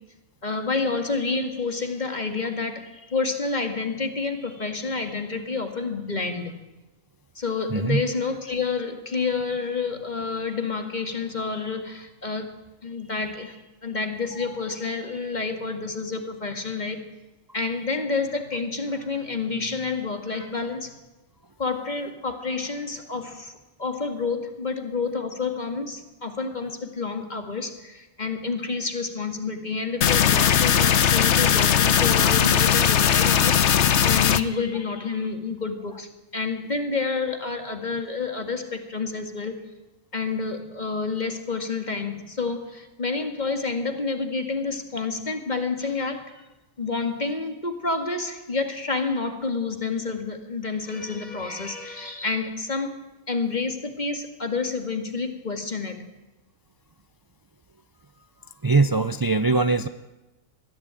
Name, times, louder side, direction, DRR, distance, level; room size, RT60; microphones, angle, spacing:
voice 1, 0.4-6.6 7.4-12.5 12.8-17.0 17.5-20.9 21.6-23.5 23.8-39.5 40.1-46.4 46.8-53.0 53.3-56.1, left 4 dB, 30° left, 6 dB, 2.2 m, -29 dB
voice 2, 7.7-8.0 58.6-59.9, right 3 dB, 35° right, 10 dB, 0.3 m, -21 dB
sound 1, 30.0-34.4, left 8 dB, 60° left, 1.1 m, -19 dB
21.0 x 14.5 x 9.0 m, 1.1 s
omnidirectional pair, 1.5 m